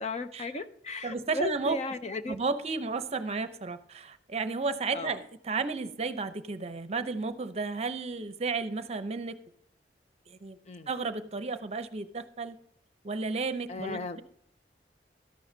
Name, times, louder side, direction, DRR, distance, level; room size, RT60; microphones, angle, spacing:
voice 1, 0.0-2.4 4.9-5.2 10.7-10.9 13.7-14.2, left 2 dB, 40° left, 0.6 m, -35 dB
voice 2, 1.0-1.8 2.3-9.3 10.3-10.6 10.9-12.6 13.0-14.2, right 4 dB, 35° right, 0.7 m, -33 dB
13.0 x 11.0 x 2.7 m
head